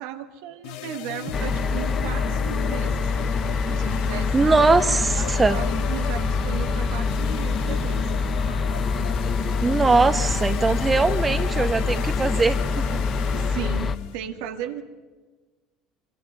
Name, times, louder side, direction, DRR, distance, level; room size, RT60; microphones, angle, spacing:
voice 1, 0.0-3.1 3.7-4.7 5.1-8.1 13.4-14.8, right 9 dB, 65° right, 7 dB, 1.9 m, -36 dB
sound 1, 0.6-14.1, left 11 dB, 60° left, 1.1 m, -36 dB
sound 2, 1.3-14.0, left 4 dB, 35° left, 1.1 m, -25 dB
voice 2, 4.3-5.6 9.6-13.0, right 3 dB, 20° right, 11 dB, 1.1 m, -21 dB
26.0 x 25.0 x 5.5 m, 1.3 s
figure-of-eight pair, 65°, 0 cm